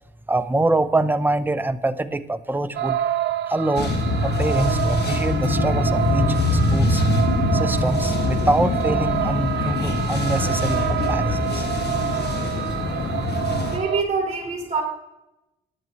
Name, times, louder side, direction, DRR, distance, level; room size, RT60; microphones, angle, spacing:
voice 1, 0.3-3.0 3.5-3.9 4.2-7.0 7.5-11.7 12.1-12.3, right 2 dB, 10° right, 10 dB, 0.7 m, -25 dB
sound 1, 2.7-14.0, right 12 dB, 65° right, 0.7 m, -28 dB
sound 2, 3.8-13.8, left 2 dB, 55° left, 2.0 m, -23 dB
voice 2, 13.4-14.8, right 4 dB, 35° right, -1 dB, 3.9 m, -26 dB
16.5 x 10.5 x 3.2 m, 0.93 s
cardioid pair, 90°, 20 cm